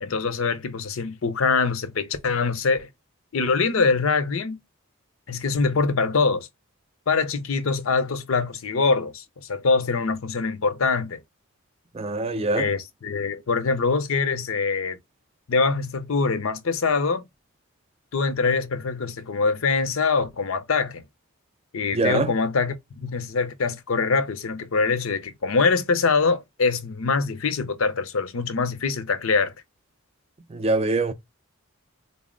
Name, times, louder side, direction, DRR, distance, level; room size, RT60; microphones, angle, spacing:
voice 1, 0.0-2.9 3.3-4.6 5.3-6.5 7.1-11.2 12.5-15.0 15.5-17.3 18.1-21.0 21.7-29.5, left 4 dB, 65° left, 0.6 m, -24 dB
voice 2, 11.9-12.7 21.9-22.3 30.5-31.1, right 2 dB, 25° right, 0.3 m, -23 dB
3.8 x 2.1 x 3.6 m
head